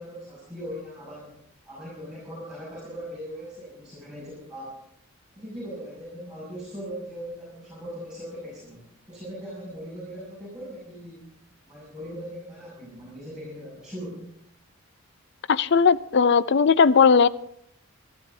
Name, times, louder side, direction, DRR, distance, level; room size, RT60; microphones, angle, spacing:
voice 1, 0.0-1.4 1.6-4.8 5.3-11.3 11.7-14.3, equal, 5° right, -8 dB, 6.1 m, -39 dB
voice 2, 15.5-17.3, left 5 dB, 50° left, 17 dB, 0.4 m, -18 dB
27.0 x 12.5 x 2.7 m, 0.72 s
head